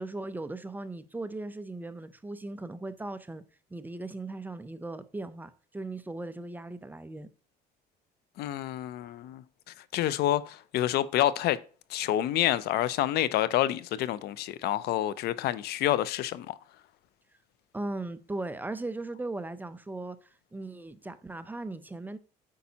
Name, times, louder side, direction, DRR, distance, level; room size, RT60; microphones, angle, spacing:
voice 1, 0.0-3.4 3.7-7.3 17.7-22.2, right 2 dB, 10° right, 0.5 m, -38 dB
voice 2, 8.4-11.6 11.9-16.6, left 13 dB, 70° left, 0.5 m, -28 dB
8.4 x 5.3 x 2.8 m
cardioid pair, 110°, 17 cm